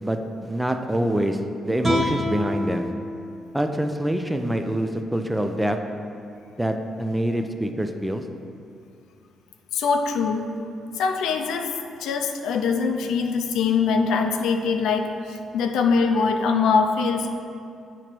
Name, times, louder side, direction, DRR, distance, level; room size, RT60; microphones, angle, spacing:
voice 1, 0.0-1.4 1.6-2.9 3.5-5.8 6.6-8.2, right 1 dB, 5° right, 6 dB, 0.4 m, -25 dB
sound 1, 1.8-5.0, left 1 dB, 30° right, 1.3 m, -29 dB
voice 2, 9.7-10.4 11.0-11.7 12.0-17.3, left 5 dB, 85° left, 4 dB, 0.4 m, -23 dB
7.8 x 3.0 x 4.4 m, 2.5 s
cardioid pair, 90°, 0 cm